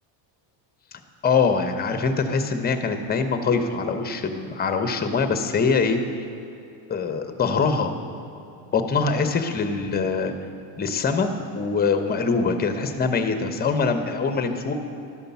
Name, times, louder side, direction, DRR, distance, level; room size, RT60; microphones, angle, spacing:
voice 1, 0.9-6.0 6.9-7.9 8.7-10.3 10.8-14.7, left 5 dB, 20° left, 7 dB, 0.7 m, -23 dB
11.0 x 5.2 x 7.0 m, 2.8 s
cardioid pair, 120°, 50 cm